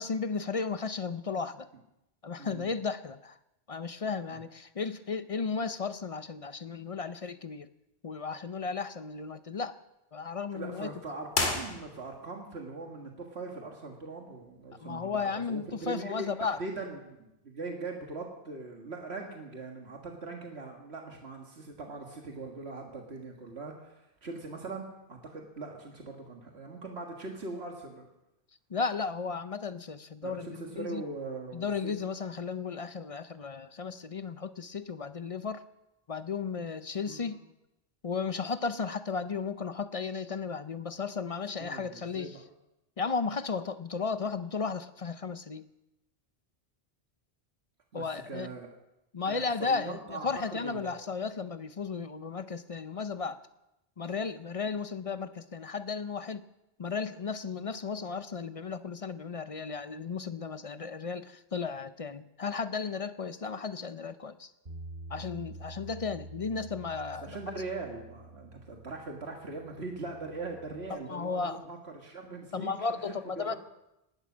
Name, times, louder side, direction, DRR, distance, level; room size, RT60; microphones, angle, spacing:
voice 1, 0.0-1.7 2.2-3.3 3.7-7.7 8.0-9.8 10.1-10.9 14.8-16.6 28.7-31.0 31.5-35.6 36.1-37.4 38.0-42.4 43.0-45.7 47.9-48.5 49.1-53.4 54.0-56.4 56.8-64.5 65.1-67.4 71.1-71.6 72.5-73.5, left 5 dB, 40° left, 13 dB, 0.6 m, -34 dB
voice 2, 2.4-2.7 4.3-4.4 10.5-28.1 30.2-31.9 37.0-37.3 41.6-42.4 47.9-48.7 49.2-51.0 67.2-72.7 73.0-73.6, right 3 dB, 90° right, 1 dB, 2.0 m, -41 dB
sound 1, 11.3-12.3, left 3 dB, 85° left, 2.3 m, -32 dB
Bass guitar, 64.7-70.9, right 2 dB, 65° right, 2.8 m, -48 dB
19.0 x 11.5 x 6.2 m, 0.91 s
omnidirectional pair, 1.0 m